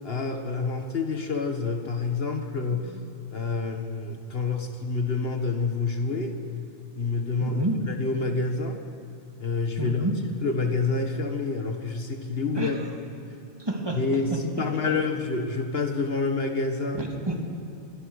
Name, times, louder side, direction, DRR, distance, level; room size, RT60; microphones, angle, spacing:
voice 1, 0.0-3.0 3.3-6.4 6.9-8.8 9.4-10.0 10.4-12.8 13.9-17.0, left 4 dB, 60° left, 4 dB, 1.7 m, -28 dB
voice 2, 2.7-3.1 7.4-7.9 9.8-10.2 12.5-12.8 13.6-14.0 14.3-15.0 17.0-17.4, right 1 dB, 20° right, 2 dB, 2.5 m, -30 dB
26.0 x 22.0 x 6.4 m, 2.8 s
omnidirectional pair, 1.1 m